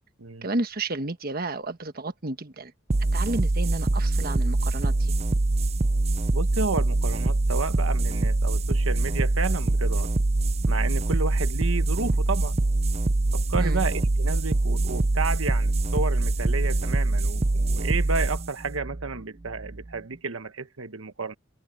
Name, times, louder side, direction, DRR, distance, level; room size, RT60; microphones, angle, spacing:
voice 1, 0.4-2.7 3.1-5.1 13.6-13.8, right 2 dB, 50° right, 1.3 m, -31 dB
sound 1, 2.9-19.9, right 2 dB, 30° right, 0.6 m, -24 dB
voice 2, 6.3-10.1 10.7-12.6 13.3-21.3, right 4 dB, 85° right, 1.2 m, -31 dB
head